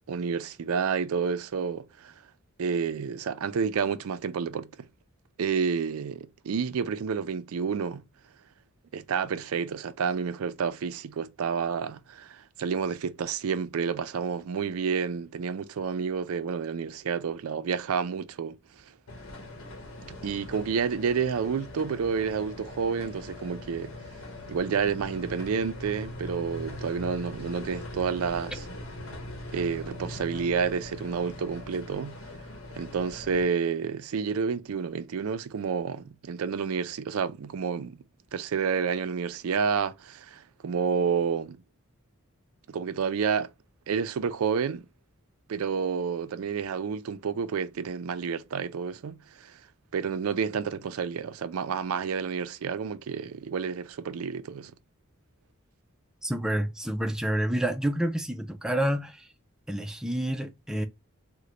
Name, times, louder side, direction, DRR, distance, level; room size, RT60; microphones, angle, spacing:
voice 1, 0.1-2.1 2.6-4.9 5.4-8.0 8.9-18.6 20.1-23.9 24.5-28.6 29.5-32.2 32.7-38.0 38.3-41.6 42.7-43.5 43.9-44.8 45.5-49.5 49.9-54.7, right 6 dB, 90° right, 0.4 m, -30 dB
sound 1, 19.1-33.4, left 1 dB, 70° left, 1.1 m, -41 dB
voice 2, 56.2-59.3 59.7-60.9, right 1 dB, 5° right, 0.4 m, -28 dB
3.8 x 2.2 x 3.0 m
head